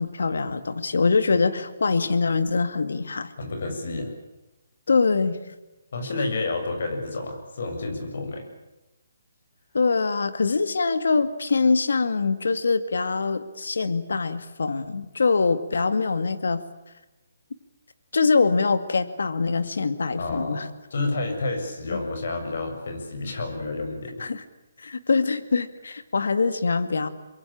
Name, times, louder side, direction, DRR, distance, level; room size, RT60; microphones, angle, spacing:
voice 1, 0.0-3.3 4.9-5.4 9.7-16.6 18.1-20.7 21.9-22.0 24.2-24.4 24.8-27.1, left 4 dB, 80° left, 11 dB, 2.1 m, -23 dB
voice 2, 3.4-4.1 5.9-8.5 20.1-20.6 20.9-24.3, left 3 dB, 65° left, 5 dB, 7.2 m, -30 dB
25.5 x 22.0 x 8.8 m, 1.0 s
hypercardioid pair, 160°, 0 cm